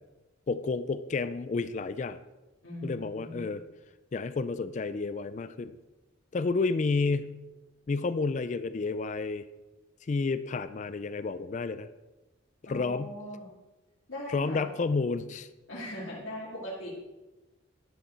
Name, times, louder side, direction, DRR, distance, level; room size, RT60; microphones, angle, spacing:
voice 1, 0.5-2.2 2.8-3.6 4.1-5.8 6.3-7.4 7.9-9.5 10.1-11.9 12.7-13.1 14.3-15.5, left 4 dB, 35° left, 13 dB, 0.3 m, -30 dB
voice 2, 2.6-3.5 12.6-13.5 14.1-14.7 15.7-16.9, left 1 dB, 80° left, -6 dB, 2.4 m, -39 dB
11.5 x 6.7 x 4.4 m, 1.1 s
head